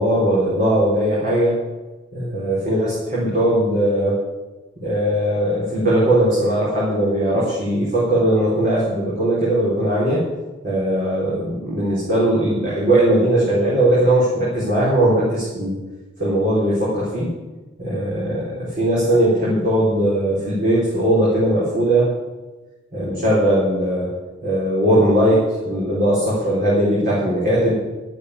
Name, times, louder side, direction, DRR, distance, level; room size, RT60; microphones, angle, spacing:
voice 1, 0.0-1.6 2.1-4.2 4.8-10.2 10.6-15.8 16.2-17.3 17.8-22.1 22.9-24.1 24.4-27.7, right 1 dB, 45° right, -8 dB, 4.5 m, -19 dB
11.0 x 8.3 x 9.9 m, 1.2 s
head